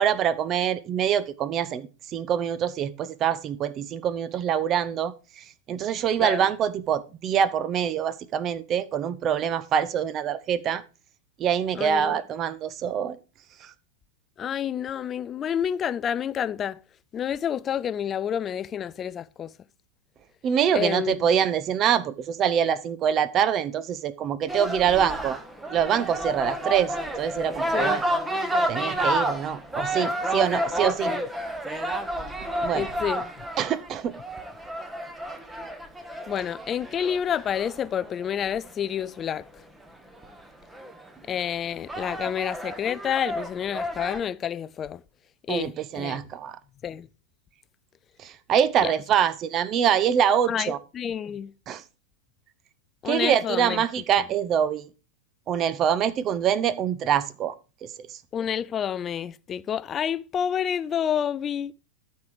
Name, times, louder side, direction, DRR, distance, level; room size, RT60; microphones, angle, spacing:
voice 1, 0.0-10.8 11.4-13.2 13.6-13.7 20.4-25.4 25.7-28.0 28.7-31.1 32.6-32.9 33.6-34.1 45.5-46.6 48.2-50.8 51.7-51.8 53.0-54.9 55.5-57.5, right 8 dB, 30° right, 0.8 m, -25 dB
voice 2, 11.8-12.2 14.4-16.8 17.1-19.5 20.7-21.3 27.7-28.0 30.8-31.2 32.7-33.3 36.3-39.5 41.3-45.0 45.5-46.2 46.8-47.1 48.8-48.9 50.5-51.5 53.0-53.8 58.3-61.7, left 8 dB, 25° left, 0.4 m, -29 dB
sound 1, 24.5-38.7 40.2-40.3 40.7-41.2 41.7-44.2, right 1 dB, 10° right, 1.1 m, -30 dB
13.0 x 4.6 x 5.0 m
figure-of-eight pair, 90°, 0 cm